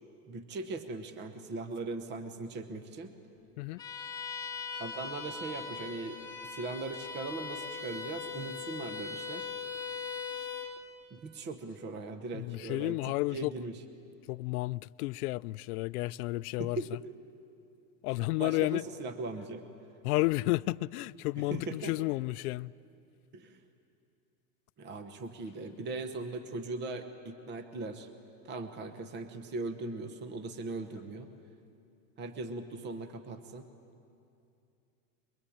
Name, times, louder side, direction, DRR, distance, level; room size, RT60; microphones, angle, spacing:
voice 1, 0.3-3.1 4.8-9.5 11.1-13.8 16.6-17.0 18.4-19.6 21.4-22.0 23.3-23.6 24.8-28.1 28.4-31.3 32.2-33.7, right 3 dB, 25° right, 1.1 m, -39 dB
Bowed string instrument, 3.8-10.8, left 5 dB, 10° left, 1.5 m, -40 dB
voice 2, 12.3-13.5 14.3-16.8 18.0-18.8 20.0-22.7, left 21 dB, 70° left, 0.5 m, -32 dB
23.0 x 23.0 x 8.7 m
supercardioid pair, 155°, 46 cm